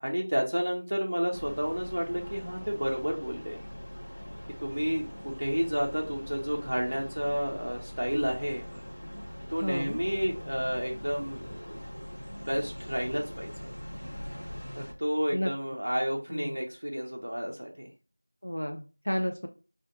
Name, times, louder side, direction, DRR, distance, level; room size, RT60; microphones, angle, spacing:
voice 1, 0.0-3.6 4.6-8.6 9.5-11.8 12.4-13.5 15.0-17.9, equal, 45° right, -1 dB, 0.4 m, -31 dB
sound 1, 1.3-14.9, equal, 45° left, 0.8 m, -42 dB
voice 2, 9.6-10.0 15.3-15.5 16.3-16.6 18.4-19.5, equal, 65° left, 5 dB, 0.4 m, -32 dB
2.4 x 2.1 x 2.8 m, 0.34 s
figure-of-eight pair, 180°, 0 cm